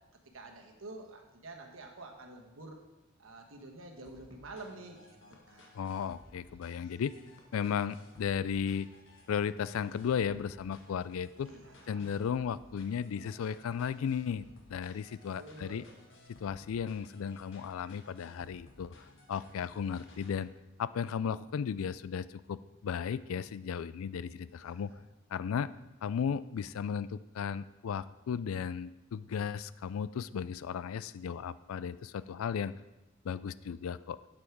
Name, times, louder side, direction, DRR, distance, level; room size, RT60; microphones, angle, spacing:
voice 1, 0.3-2.8 3.2-5.2 5.5-5.7 11.4-12.1 15.3-15.9 24.6-25.0, right 2 dB, 70° right, 2 dB, 1.3 m, -48 dB
sound 1, 4.0-20.4, left 2 dB, 65° left, 1.5 m, -58 dB
voice 2, 5.7-7.1 7.5-8.9 9.3-11.5 11.9-15.8 16.3-18.9 19.3-20.5 20.8-24.9 25.3-25.7 26.0-32.7 33.2-34.2, left 7 dB, 85° left, 17 dB, 0.4 m, -35 dB
8.3 x 7.6 x 4.6 m, 1.0 s
head